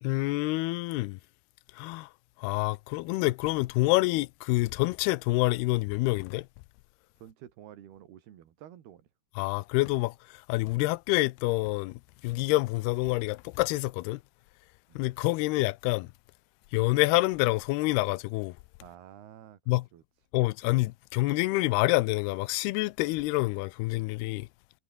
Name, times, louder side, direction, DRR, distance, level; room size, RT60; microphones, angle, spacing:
voice 1, 0.0-1.2 1.7-2.1 2.4-6.5 9.4-14.2 15.0-16.1 16.7-18.6 19.7-19.9 20.3-24.5, left 21 dB, 85° left, 2.6 m, -27 dB
voice 2, 7.2-9.1 14.9-15.0 18.8-19.6 19.9-20.0, right 11 dB, 75° right, 4.1 m, -50 dB
omnidirectional pair, 4.6 m